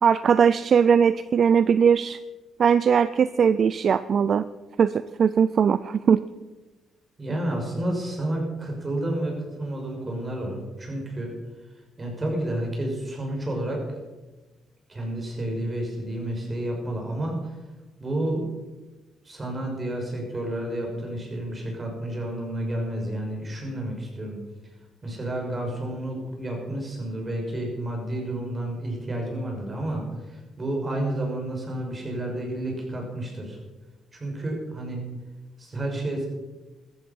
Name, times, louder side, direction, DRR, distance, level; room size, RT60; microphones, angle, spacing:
voice 1, 0.0-2.2 2.6-4.4 4.8-6.2, right 7 dB, 55° right, 15 dB, 0.4 m, -20 dB
voice 2, 7.2-11.3 12.0-13.8 14.9-17.6 18.0-18.4 19.2-24.4 25.0-33.6 34.1-35.0 35.6-36.3, right 1 dB, 30° right, 1 dB, 6.3 m, -30 dB
15.0 x 14.0 x 5.5 m, 1.2 s
cardioid pair, 90°, 0 cm